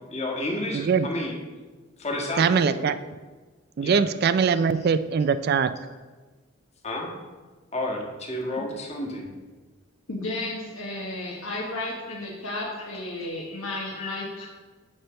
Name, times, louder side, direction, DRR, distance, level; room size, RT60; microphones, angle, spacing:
voice 1, 0.1-1.4 2.0-2.9 3.8-4.0 4.5-4.6 6.8-7.1 7.7-9.3 11.5-12.2 12.5-12.6 13.2-14.5, left 1 dB, 30° left, -1 dB, 1.4 m, -32 dB
voice 2, 0.7-1.1 2.4-3.0 3.8-5.7, right 6 dB, 50° right, 13 dB, 0.3 m, -22 dB
voice 3, 10.1-14.5, left 2 dB, 90° left, -3 dB, 1.2 m, -33 dB
9.9 x 3.3 x 6.7 m, 1.3 s
head